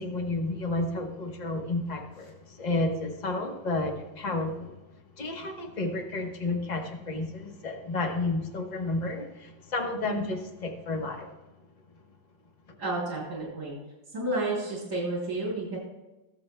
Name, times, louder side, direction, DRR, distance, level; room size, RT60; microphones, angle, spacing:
voice 1, 0.0-4.8 5.2-11.3, left 2 dB, 30° left, 3 dB, 0.9 m, -31 dB
voice 2, 12.8-13.8 14.1-15.8, right 2 dB, 50° right, -4 dB, 3.6 m, -31 dB
21.0 x 7.5 x 2.2 m, 1.1 s
omnidirectional pair, 2.2 m